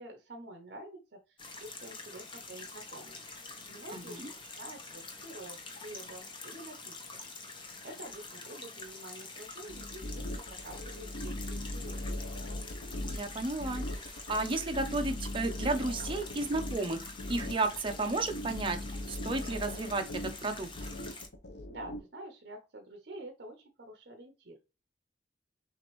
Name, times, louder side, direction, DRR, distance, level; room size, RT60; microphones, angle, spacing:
voice 1, 0.0-3.3 3.7-6.9 7.8-12.1 21.7-24.7, right 1 dB, 60° right, 0.8 m, -48 dB
sound 1, 1.4-21.3, left 3 dB, 30° left, 0.8 m, -46 dB
voice 2, 3.9-4.3 13.1-18.8 19.1-20.7, right 2 dB, 30° right, 0.7 m, -33 dB
sound 2, 9.7-22.0, left 1 dB, 65° left, 0.7 m, -40 dB
6.3 x 2.6 x 3.1 m
head